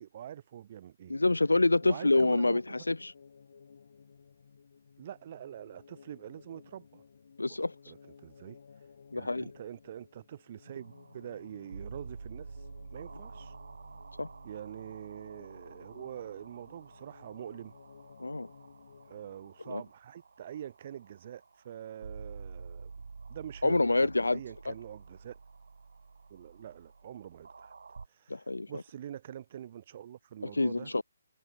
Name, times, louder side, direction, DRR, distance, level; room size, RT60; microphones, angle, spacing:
voice 1, 0.0-1.2 1.8-2.9 5.0-7.0 7.9-8.6 9.1-12.6 12.9-13.5 14.4-17.7 19.1-22.9 23.3-25.4 26.3-27.7 28.1-30.9, right 10 dB, 40° right, 6.8 m, -45 dB
sound 1, 1.0-19.8, left 6 dB, 55° left, 3.5 m, -57 dB
voice 2, 1.1-3.1 7.4-7.7 9.1-9.4 14.2-14.3 18.2-18.5 19.7-19.8 23.6-24.4 24.7-24.8 28.3-28.7 30.4-31.0, left 2 dB, 75° left, 0.5 m, -27 dB
sound 2, 10.7-28.1, right 4 dB, 60° right, 1.4 m, -49 dB
figure-of-eight pair, 140°, 0 cm